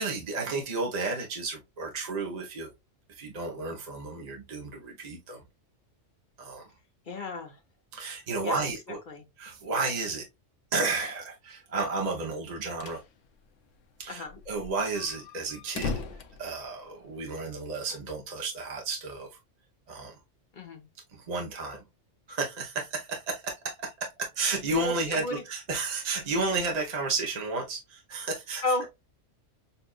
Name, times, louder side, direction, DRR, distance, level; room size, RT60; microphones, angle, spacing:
voice 1, 0.0-2.7 3.1-5.4 6.4-6.6 7.9-9.0 9.4-10.2 10.7-13.0 14.0-16.0 16.4-19.3 19.9-20.2 21.1-21.8 22.3-28.6, right 3 dB, 35° right, 0.9 m, -32 dB
voice 2, 7.1-7.6 8.4-8.7 9.1-9.3 14.1-14.4 20.5-20.9 24.8-25.4 28.6-28.9, left 2 dB, 45° left, 1.2 m, -33 dB
sound 1, 12.4-13.1 13.4-13.5 13.7-13.8 14.3-17.3, left 4 dB, 85° left, 1.1 m, -38 dB
6.8 x 2.5 x 2.4 m
omnidirectional pair, 1.3 m